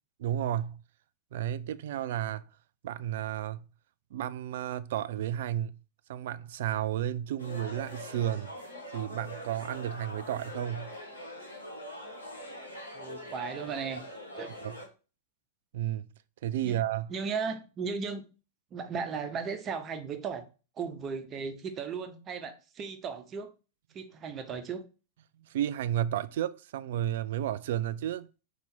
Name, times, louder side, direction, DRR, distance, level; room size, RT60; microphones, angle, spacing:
voice 1, 0.2-0.8 1.3-2.4 2.8-3.6 4.1-5.7 6.1-8.5 8.9-10.9 14.6-14.7 15.7-16.1 16.4-17.1 25.5-28.3, right 11 dB, 60° right, 0.4 m, -32 dB
sound 1, 7.4-14.9, left 1 dB, 85° left, 1.6 m, -43 dB
voice 2, 12.9-14.0 14.4-14.5 16.6-16.8 17.1-18.2 18.7-20.4 20.8-23.5 23.9-24.8, right 5 dB, 30° right, 1.0 m, -36 dB
4.5 x 4.1 x 5.2 m
figure-of-eight pair, 95°, 0 cm